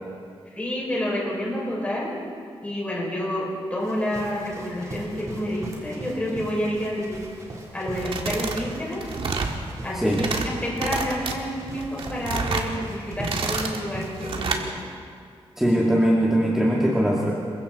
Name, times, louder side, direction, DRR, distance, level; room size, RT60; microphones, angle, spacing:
voice 1, 0.5-2.2 2.6-7.2 7.7-9.0 9.8-14.6, left 1 dB, 15° left, -5 dB, 6.2 m, -29 dB
sound 1, 3.8-14.3, right 1 dB, 30° right, 3.8 m, -39 dB
sound 2, 7.9-8.6 8.9-9.6 10.0-10.5 10.8-11.3 11.8-12.7 13.1-13.8 14.2-14.6, right 4 dB, 60° right, 1.9 m, -29 dB
voice 2, 15.6-17.3, equal, 5° right, -4 dB, 2.1 m, -21 dB
27.5 x 23.0 x 4.3 m, 2.2 s
wide cardioid pair, 165°, 10 cm